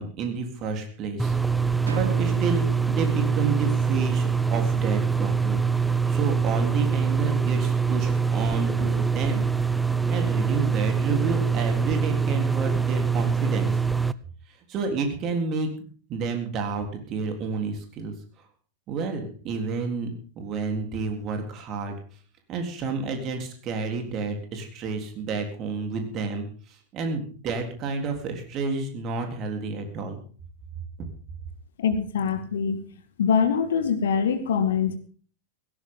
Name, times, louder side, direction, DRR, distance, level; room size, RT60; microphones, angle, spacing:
voice 1, 0.0-1.3 1.9-5.7 6.1-9.5 10.0-13.7 14.7-15.7 16.1-18.1 18.9-21.9 22.5-30.2, right 4 dB, 35° right, 4 dB, 3.7 m, -30 dB
sound 1, 1.2-14.1, right 5 dB, 5° right, 0.6 m, -24 dB
sound 2, 1.9-4.3, right 6 dB, 70° right, 0.8 m, -39 dB
voice 2, 31.8-32.9 33.2-35.0, left 6 dB, 60° left, 10 dB, 2.1 m, -23 dB
17.0 x 17.0 x 3.9 m, 0.42 s
figure-of-eight pair, 90°, 0 cm